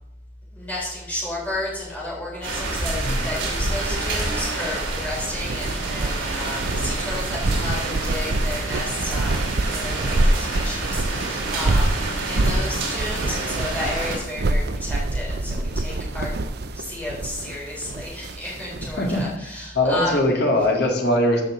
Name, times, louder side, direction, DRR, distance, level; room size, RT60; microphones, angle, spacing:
voice 1, 0.5-12.0 12.3-16.4 16.7-20.2, left 1 dB, 10° left, -6 dB, 3.7 m, -32 dB
sound 1, 2.4-14.2, right 2 dB, 80° right, 3.0 m, -28 dB
sound 2, 5.0-19.2, right 2 dB, 55° right, 0.6 m, -26 dB
voice 2, 19.7-21.4, left 1 dB, 60° left, 0 dB, 2.1 m, -21 dB
14.0 x 5.7 x 3.8 m, 0.91 s
head